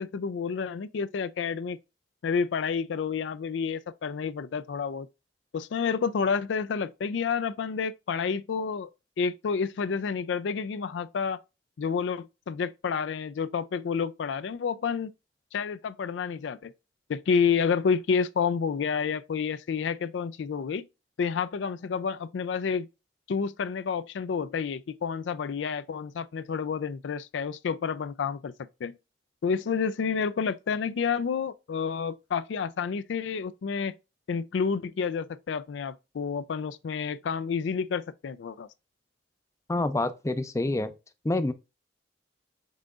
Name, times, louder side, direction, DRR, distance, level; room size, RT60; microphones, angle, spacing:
voice 1, 0.0-1.8 2.2-5.1 5.5-8.9 9.2-11.4 11.8-15.1 15.5-16.7 17.1-20.9 21.2-22.9 23.3-28.5 28.8-29.0 29.4-34.0 34.3-38.7, left 6 dB, 80° left, 0.4 m, -29 dB
voice 2, 39.7-40.9 41.2-41.5, left 2 dB, 15° left, 0.4 m, -27 dB
5.5 x 3.9 x 2.4 m
head